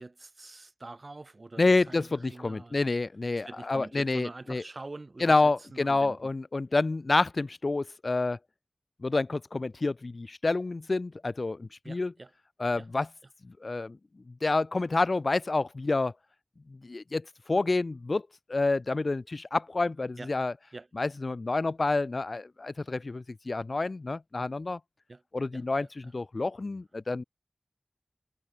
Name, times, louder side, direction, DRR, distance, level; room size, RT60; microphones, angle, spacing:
voice 1, 0.0-2.8 3.4-6.3 11.8-12.3 12.7-12.9 20.2-20.3 20.7-20.9 25.1-25.2 25.5-26.1, right 2 dB, 60° right, 2.3 m, -45 dB
voice 2, 1.6-4.6 5.2-8.4 9.0-12.1 12.6-13.1 13.4-14.0 14.3-16.1 16.7-18.2 18.5-20.5 21.0-24.8 25.3-25.9 26.1-27.2, left 3 dB, 70° left, 0.7 m, -28 dB
wide cardioid pair, 40°, 0 cm